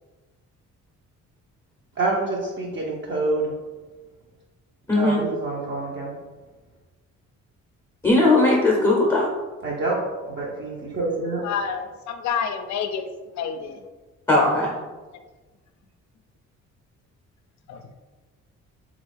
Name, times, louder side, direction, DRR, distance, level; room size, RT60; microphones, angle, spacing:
voice 1, 2.0-3.5 4.9-6.2 9.6-11.4, right 2 dB, 40° right, -4 dB, 0.6 m, -27 dB
voice 2, 4.9-5.2 8.0-9.3 14.3-14.7, left 2 dB, 10° left, -3 dB, 0.6 m, -18 dB
voice 3, 11.4-13.8 15.1-15.2 17.7-17.9, left 7 dB, 65° left, 7 dB, 0.5 m, -29 dB
3.2 x 2.4 x 3.4 m, 1.3 s
cardioid pair, 90°, 30 cm